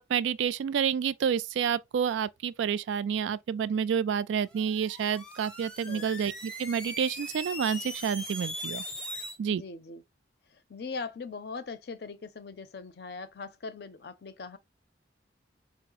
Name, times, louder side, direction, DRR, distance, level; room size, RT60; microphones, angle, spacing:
voice 1, 0.0-8.8 9.4-9.6, right 7 dB, 85° right, 0.3 m, -29 dB
sound 1, 4.5-9.4, left 1 dB, 5° left, 0.6 m, -40 dB
voice 2, 9.5-10.0 10.7-14.6, left 4 dB, 55° left, 0.5 m, -40 dB
4.5 x 2.0 x 2.9 m
head